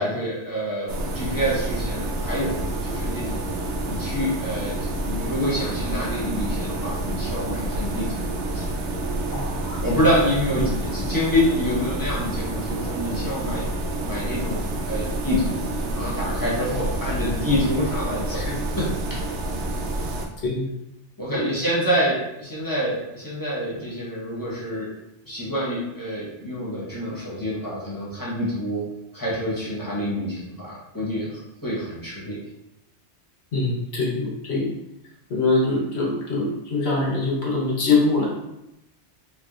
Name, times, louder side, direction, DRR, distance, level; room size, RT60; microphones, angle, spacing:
voice 1, 0.0-3.5 3.9-8.6 9.8-10.6 10.9-13.7 14.0-15.6 15.9-18.4 18.8-19.2 21.2-24.9 25.2-28.8 29.1-32.4, equal, 20° left, -8 dB, 1.1 m, -27 dB
sound 1, 0.9-20.3, right 1 dB, 75° right, 0.8 m, -28 dB
voice 2, 9.3-9.8 10.5-10.7 17.2-17.3 18.3-18.6 20.4-20.7 21.3-21.5 33.5-34.7 35.3-38.3, left 3 dB, 65° left, -4 dB, 1.2 m, -24 dB
3.4 x 3.2 x 2.4 m, 0.88 s
omnidirectional pair, 1.2 m